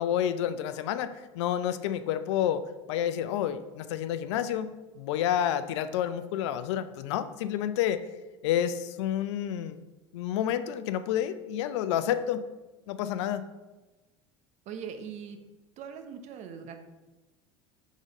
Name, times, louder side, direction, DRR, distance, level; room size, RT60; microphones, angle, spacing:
voice 1, 0.0-2.6 2.9-8.0 8.4-9.8 10.1-12.4 12.9-13.4, left 10 dB, 75° left, 12 dB, 0.4 m, -29 dB
voice 2, 14.7-15.4 15.8-16.8, right 7 dB, 50° right, 7 dB, 0.8 m, -40 dB
5.0 x 3.7 x 5.3 m, 1.1 s
hypercardioid pair, 85°, 15 cm